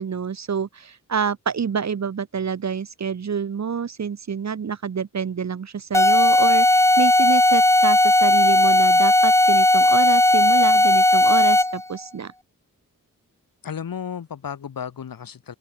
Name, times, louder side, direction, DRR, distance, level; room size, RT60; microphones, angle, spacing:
voice 1, 0.0-12.3, right 6 dB, 55° right, 1.2 m, -27 dB
sound 1, 5.9-11.8, left 1 dB, 10° left, 0.7 m, -16 dB
voice 2, 13.6-15.6, left 7 dB, 85° left, 2.5 m, -33 dB
open air
wide cardioid pair, 115°, 33 cm